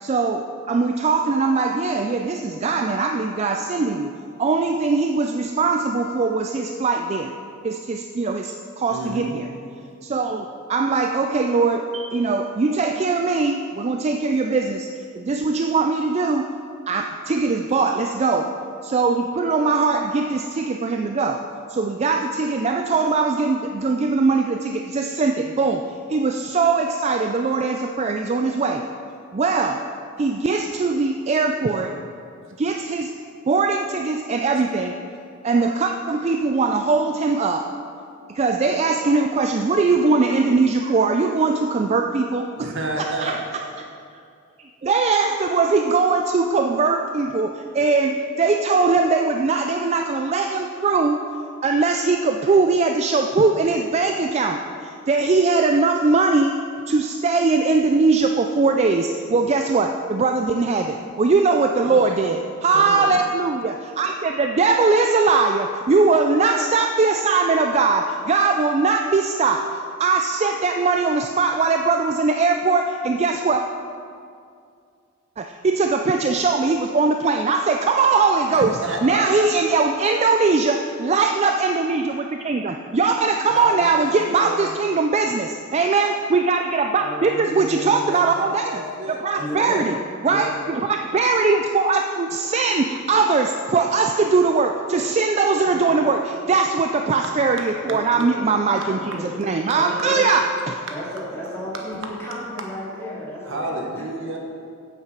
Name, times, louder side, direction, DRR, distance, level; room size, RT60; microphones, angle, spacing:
voice 1, 0.0-4.1 4.4-7.3 7.6-9.5 10.0-14.9 15.1-16.5 16.9-21.4 21.7-28.8 29.3-29.8 30.2-32.0 32.6-33.1 33.5-34.9 35.4-37.7 38.3-42.7 43.0-43.4 44.8-51.2 51.6-56.6 56.9-73.6 75.4-78.7 79.0-88.8 89.1-90.0 90.2-100.7, right 4 dB, 30° right, 5 dB, 0.4 m, -21 dB
voice 2, 8.9-9.3 42.6-43.4 61.8-62.2 62.7-63.2 78.5-80.2 83.5-84.7 88.1-89.9 95.7-96.0 103.4-104.4, right 2 dB, 65° right, 1 dB, 1.2 m, -31 dB
voice 3, 87.0-88.1 89.4-89.9 90.2-90.6 97.8-98.3 98.8-99.4 99.7-100.3 100.9-104.0, left 1 dB, 15° left, -7 dB, 2.8 m, -33 dB
8.2 x 7.8 x 5.9 m, 2.3 s
head